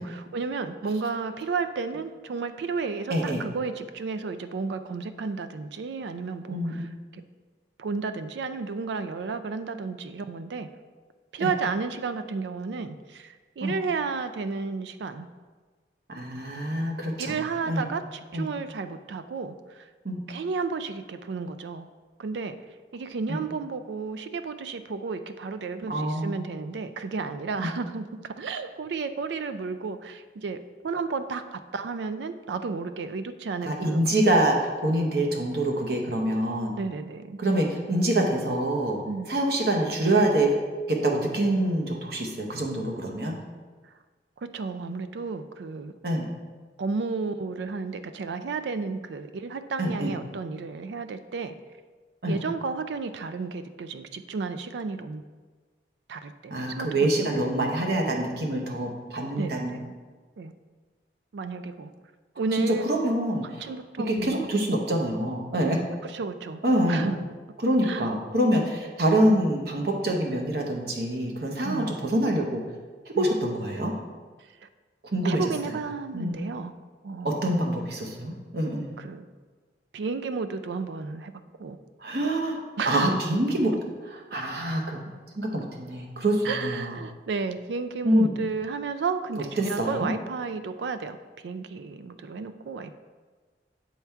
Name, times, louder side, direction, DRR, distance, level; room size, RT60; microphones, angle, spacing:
voice 1, 0.0-7.2 7.8-10.7 11.3-15.3 17.2-19.9 20.3-21.9 22.2-22.6 22.9-34.1 36.8-37.4 39.1-39.3 43.8-43.9 44.4-45.9 46.8-51.5 52.3-55.2 56.1-57.4 59.4-59.9 60.4-60.5 61.3-61.9 62.4-62.8 63.6-64.5 66.0-66.6 66.9-67.2 67.8-68.1 71.6-71.9 73.2-73.3 75.2-76.7 77.0-77.6 79.0-79.3 79.9-81.3 81.6-81.8 82.8-83.2 86.4-91.2 91.4-92.9, right 4 dB, 80° right, 11 dB, 0.4 m, -32 dB
voice 2, 3.1-3.4 6.5-6.7 11.4-11.5 13.6-13.7 16.1-17.4 17.7-17.9 18.3-18.5 20.0-20.2 23.3-23.4 25.9-26.4 27.6-27.7 33.6-36.7 37.4-39.0 39.3-40.6 40.9-43.4 46.0-46.3 49.8-50.1 52.2-52.4 56.5-59.7 62.5-63.7 64.0-65.8 66.6-67.1 67.6-72.6 73.1-74.0 75.0-75.4 76.1-76.4 77.2-78.9 82.0-82.6 82.8-83.7 84.0-85.0 85.4-86.9 88.0-88.3 89.4-90.1, right 1 dB, 60° right, 1 dB, 0.9 m, -25 dB
7.1 x 4.4 x 3.5 m, 1.4 s
head